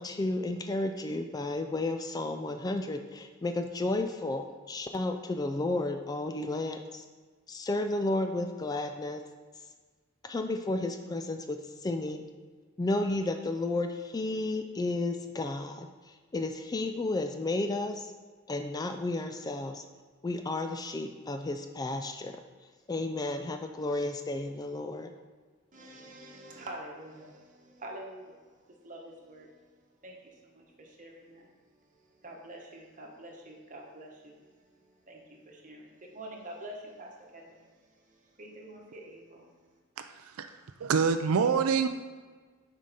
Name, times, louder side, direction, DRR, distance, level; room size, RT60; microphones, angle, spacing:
voice 1, 0.0-7.0 7.5-9.2 10.2-12.3 12.8-18.1 18.5-19.8 20.2-22.4 22.9-25.1, left 2 dB, 20° left, 6 dB, 0.3 m, -32 dB
voice 2, 25.7-29.5 30.0-31.5 32.2-39.5, right 1 dB, 40° right, 0 dB, 1.2 m, -47 dB
voice 3, 40.8-41.9, right 6 dB, 80° right, 8 dB, 0.4 m, -25 dB
7.5 x 4.9 x 4.1 m, 1.4 s
head